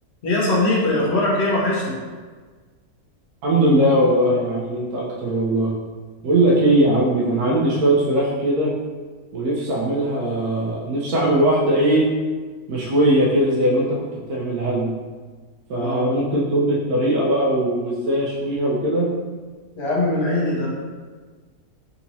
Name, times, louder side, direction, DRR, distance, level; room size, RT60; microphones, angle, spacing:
voice 1, 0.2-2.0 15.7-16.2 19.8-20.7, left 2 dB, 50° left, -4 dB, 0.9 m, -21 dB
voice 2, 3.4-5.7 6.2-8.7 9.3-12.1 12.7-14.0 14.3-14.9 15.7-19.1, right 1 dB, 80° right, -4 dB, 1.1 m, -20 dB
3.9 x 2.8 x 2.6 m, 1.4 s
omnidirectional pair, 1.6 m